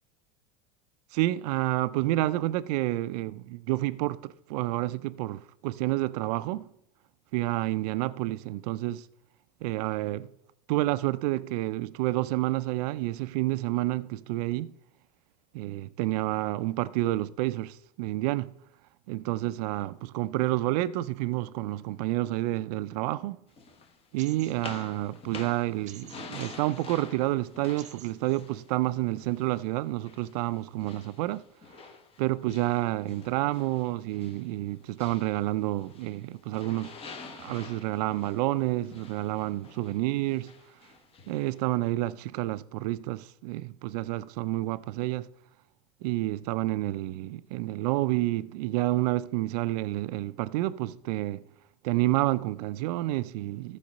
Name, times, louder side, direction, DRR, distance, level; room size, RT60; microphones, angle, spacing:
voice 1, 1.1-6.7 7.3-9.1 9.6-10.3 10.7-14.7 15.5-18.5 19.1-23.4 24.1-31.4 32.2-36.9 37.3-40.5 41.3-45.3 46.0-51.4 51.8-53.8, right 17 dB, 75° right, 0.4 m, -29 dB
sound 1, 23.6-29.6 30.0-36.2 36.5-41.6, left 4 dB, 30° left, 1.2 m, -48 dB
sound 2, 24.2-24.9 25.9-26.9 27.8-28.5, right 10 dB, 35° right, 0.9 m, -50 dB
14.0 x 4.9 x 5.2 m
supercardioid pair, 125°, 20 cm